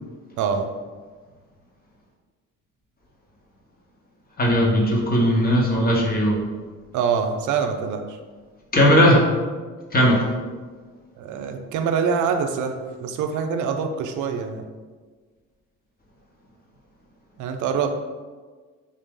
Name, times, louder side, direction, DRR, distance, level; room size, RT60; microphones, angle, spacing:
voice 1, 0.4-0.7 6.9-8.2 11.2-14.7 17.4-17.9, right 6 dB, 75° right, 6 dB, 0.4 m, -25 dB
voice 2, 4.4-6.4 8.7-9.2 9.9-10.2, equal, 30° left, -2 dB, 1.0 m, -17 dB
3.6 x 2.6 x 3.6 m, 1.4 s
cardioid pair, 90°, 30 cm